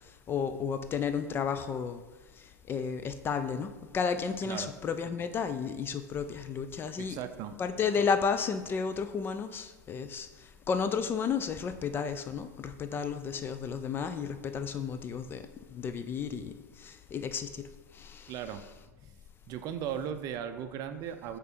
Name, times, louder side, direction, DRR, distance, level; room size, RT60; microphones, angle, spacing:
voice 1, 0.3-2.0 2.7-7.2 7.6-10.3 10.7-16.5 16.8-17.7 17.9-18.3, left 6 dB, 20° left, 0.3 m, -32 dB
voice 2, 7.0-7.5 18.3-18.6 19.5-21.4, right 9 dB, 40° right, 0.5 m, -37 dB
6.7 x 3.7 x 4.2 m
figure-of-eight pair, 90°, 10 cm